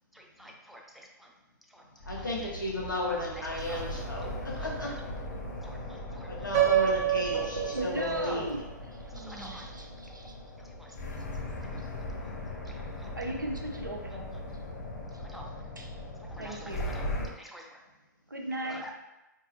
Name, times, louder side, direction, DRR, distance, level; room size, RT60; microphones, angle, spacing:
voice 1, 0.1-1.3 1.7-1.8 2.2-2.5 3.4-3.8 4.2-4.9 5.6-6.5 8.3-8.4 9.1-9.7 10.1-11.0 11.7-11.8 12.2-13.1 15.2-15.5 16.2-17.8 18.6-18.9, equal, ahead, 0 dB, 0.4 m, -49 dB
sound 1, 2.0-17.3, left 1 dB, 55° left, 0.7 m, -39 dB
voice 2, 2.1-4.9 6.3-7.4 7.8-8.5, left 1 dB, 90° left, -3 dB, 0.9 m, -33 dB
Piano, 6.5-8.5, right 11 dB, 50° right, 1.0 m, -28 dB
voice 3, 7.3-10.4 11.0-11.2 12.7-12.8 13.2-14.3 15.1-15.2 15.8-16.0 16.4-16.9 18.3-18.8, right 1 dB, 90° right, 1 dB, 0.6 m, -37 dB
4.0 x 2.7 x 2.7 m, 0.99 s
figure-of-eight pair, 110°, 10 cm